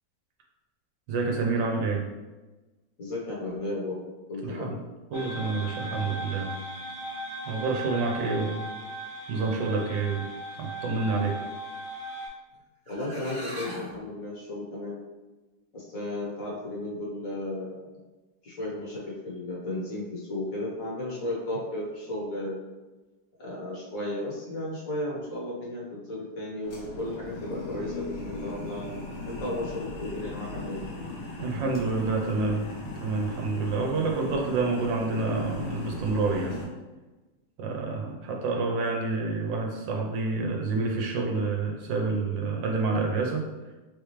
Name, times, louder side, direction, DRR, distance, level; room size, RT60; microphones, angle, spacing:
voice 1, 1.1-2.0 4.4-4.8 5.1-6.5 7.5-8.6 9.3-10.3 10.6-11.4 31.4-32.7 33.0-36.6 37.6-43.5, right 3 dB, 80° right, 0 dB, 1.5 m, -28 dB
voice 2, 3.0-4.0 4.3-4.7 5.8-6.0 12.9-15.0 15.7-17.9 18.4-22.6 23.4-29.0 29.3-30.8, left 1 dB, 50° left, -5 dB, 1.4 m, -34 dB
sound 1, 5.1-12.3, right 1 dB, 15° left, 0.9 m, -38 dB
sound 2, 12.5-12.6 12.9-14.0, right 1 dB, 45° right, 0.9 m, -39 dB
sound 3, 26.6-36.7, left 2 dB, 90° left, 1.9 m, -38 dB
4.2 x 3.5 x 3.1 m, 1.2 s
omnidirectional pair, 2.0 m